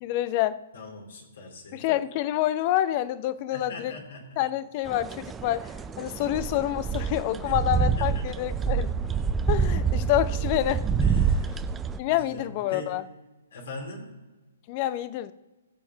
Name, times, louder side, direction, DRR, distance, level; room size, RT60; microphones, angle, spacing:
voice 1, 0.0-0.6 1.7-3.9 4.4-5.7 6.0-8.9 9.5-10.8 12.0-13.0 14.7-15.3, left 13 dB, 35° left, 15 dB, 0.6 m, -27 dB
voice 2, 0.7-1.9 3.5-4.4 7.4-8.2 11.0-11.6 12.1-12.9 13.5-14.1, left 2 dB, 70° left, -1 dB, 2.8 m, -42 dB
sound 1, 4.9-12.0, right 6 dB, 15° right, 0.5 m, -27 dB
20.0 x 7.2 x 2.9 m, 1.2 s
hypercardioid pair, 130°, 0 cm